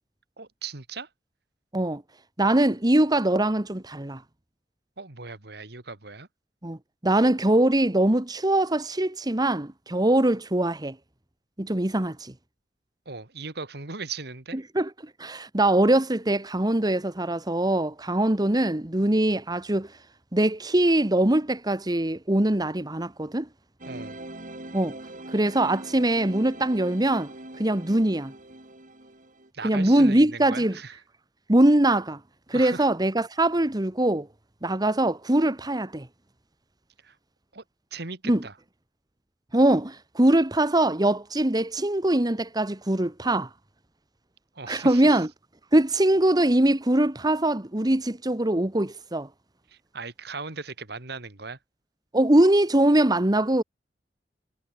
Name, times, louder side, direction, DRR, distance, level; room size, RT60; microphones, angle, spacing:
voice 1, 0.4-1.1 5.0-6.3 13.1-14.6 23.9-24.2 29.5-31.0 32.5-32.9 37.0-37.2 37.5-37.6 37.9-38.5 44.5-45.2 49.7-51.6, right 4 dB, 65° right, 2.6 m, -38 dB
voice 2, 2.4-4.2 6.6-11.0 11.6-12.3 14.7-14.9 15.2-19.9 20.3-23.5 24.7-25.0 25.3-28.3 29.6-30.8 31.5-32.2 32.5-34.3 34.6-36.1 38.2-38.4 39.5-43.5 44.7-45.3 45.7-49.3 52.1-53.6, right 1 dB, 25° right, 1.4 m, -22 dB
sound 1, 23.8-29.5, right 1 dB, 50° right, 7.2 m, -41 dB
head